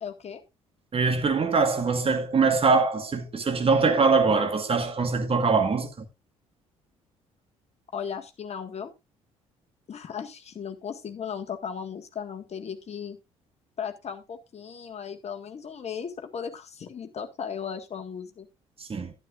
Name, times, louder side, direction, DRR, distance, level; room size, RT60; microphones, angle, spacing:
voice 1, 0.0-0.4 7.9-8.9 9.9-13.2 13.8-18.5, left 7 dB, 40° left, 1.8 m, -36 dB
voice 2, 0.9-6.1 18.8-19.1, right 4 dB, 35° right, 2.0 m, -23 dB
11.5 x 11.5 x 2.5 m
figure-of-eight pair, 50°, 16 cm